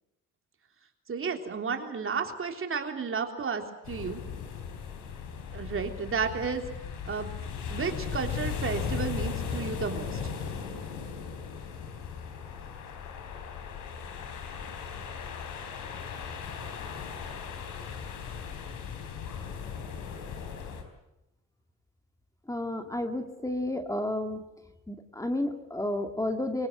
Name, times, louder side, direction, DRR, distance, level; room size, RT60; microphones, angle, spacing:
voice 1, 1.1-4.2 5.5-6.6 7.1-7.3 7.7-10.2, right 5 dB, 45° right, 4 dB, 3.5 m, -32 dB
sound 1, 3.8-20.8, left 7 dB, 85° left, 4.0 m, -37 dB
voice 2, 22.5-24.4 24.9-26.7, left 1 dB, 10° left, 6 dB, 2.2 m, -31 dB
25.0 x 17.5 x 8.0 m, 0.92 s
cardioid pair, 90°, 30 cm